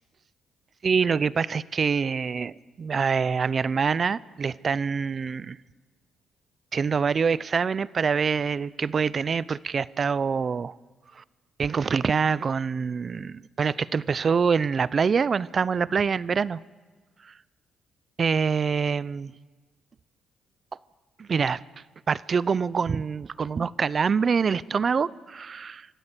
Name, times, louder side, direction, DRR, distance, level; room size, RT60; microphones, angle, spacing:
voice 1, 0.8-5.6 6.7-10.7 11.2-11.3 11.6-16.6 18.2-19.3 21.2-21.6 22.1-25.9, right 5 dB, 45° right, 0.6 m, -25 dB
24.5 x 13.5 x 8.4 m
cardioid pair, 90°, 0 cm